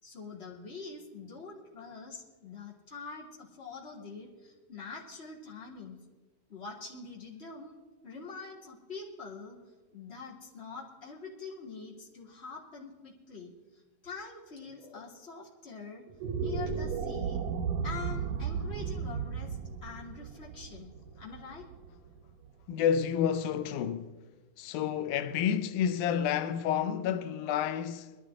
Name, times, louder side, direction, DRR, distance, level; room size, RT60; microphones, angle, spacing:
voice 1, 0.0-6.0 6.5-7.8 8.0-9.6 9.9-16.0 16.4-17.4 17.8-21.6, left 4 dB, 20° left, 2.7 m, -45 dB
sound 1, 16.1-22.5, right 6 dB, 85° right, 2.5 m, -35 dB
voice 2, 22.7-24.2 24.6-28.2, left 8 dB, 85° left, 2.1 m, -30 dB
21.5 x 12.0 x 3.7 m
omnidirectional pair, 3.5 m